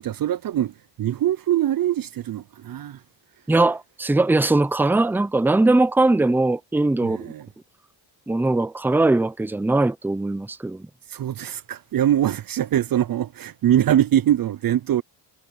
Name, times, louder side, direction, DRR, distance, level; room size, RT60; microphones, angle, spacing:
voice 1, 0.0-3.0 7.0-7.5 11.1-15.0, right 11 dB, 50° right, 0.5 m, -23 dB
voice 2, 3.5-7.3 8.3-10.9, right 2 dB, 5° right, 0.6 m, -20 dB
cardioid pair, 130°, 44 cm